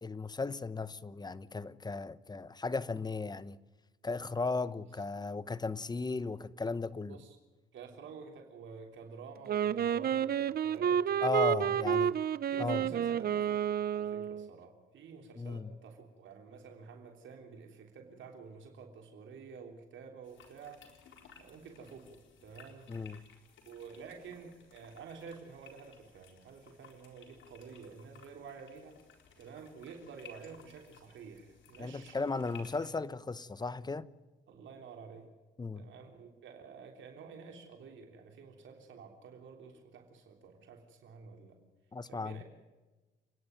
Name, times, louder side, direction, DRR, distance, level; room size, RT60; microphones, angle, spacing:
voice 1, 0.0-3.6 4.0-7.2 11.2-12.1 12.6-12.9 15.4-15.7 22.9-23.2 31.8-34.1 35.6-35.9 41.9-42.4, left 3 dB, 20° left, 0.9 m, -36 dB
voice 2, 7.0-7.4 7.7-11.9 12.5-20.8 21.4-22.9 23.6-29.0 29.4-32.5 34.5-35.3 35.7-41.6 42.1-42.4, right 5 dB, 70° right, 3.4 m, -50 dB
Wind instrument woodwind instrument, 9.5-14.5, right 9 dB, 50° right, 0.7 m, -30 dB
sound 1, 20.2-32.9, left 5 dB, 75° left, 4.2 m, -59 dB
30.0 x 10.5 x 9.0 m
cardioid pair, 90°, 20 cm